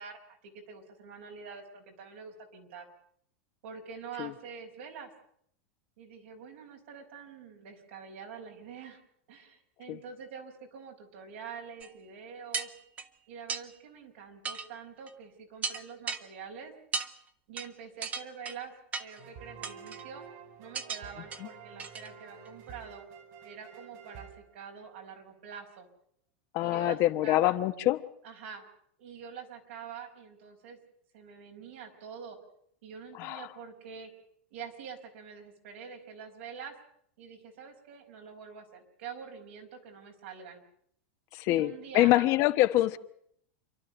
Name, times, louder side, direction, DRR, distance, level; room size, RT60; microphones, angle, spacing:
voice 1, 0.0-2.9 3.6-5.1 6.0-9.0 9.3-12.7 13.3-16.7 17.5-18.7 19.0-20.2 20.6-23.1 23.4-25.9 26.6-27.6 28.2-28.7 29.0-30.8 31.1-32.4 32.8-34.1 34.5-36.8 37.2-40.6 41.4-42.3, right 6 dB, 75° right, 3 dB, 5.1 m, -46 dB
sound 1, 11.8-11.9 12.5-13.1 13.5-13.6 14.4-14.7 15.1-15.2 15.6-16.2 16.9-17.1 17.6-17.7 18.0-18.6 18.9-19.2 19.6-20.0 20.7-21.0 21.3-21.4 21.8-22.1 22.5-22.6, right 5 dB, 25° right, 1.3 m, -35 dB
sound 2, 19.2-25.1, right 7 dB, 55° right, 4.4 m, -50 dB
voice 2, 26.5-28.0 33.1-33.5 41.3-43.0, left 16 dB, 50° left, 10 dB, 1.2 m, -25 dB
27.5 x 11.5 x 9.0 m, 0.69 s
supercardioid pair, 125°, 6 cm